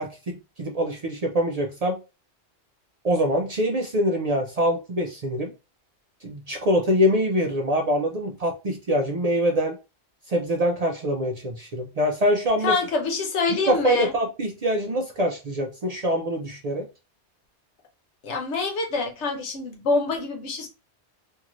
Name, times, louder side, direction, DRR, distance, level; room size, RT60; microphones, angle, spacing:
voice 1, 0.0-2.0 3.0-5.5 6.2-9.8 10.3-12.7 13.7-16.8, equal, 55° right, 0.4 m, -24 dB
voice 2, 12.6-14.1 18.2-20.7, left 3 dB, 85° left, 1.1 m, -26 dB
2.7 x 2.5 x 2.9 m
omnidirectional pair, 1.1 m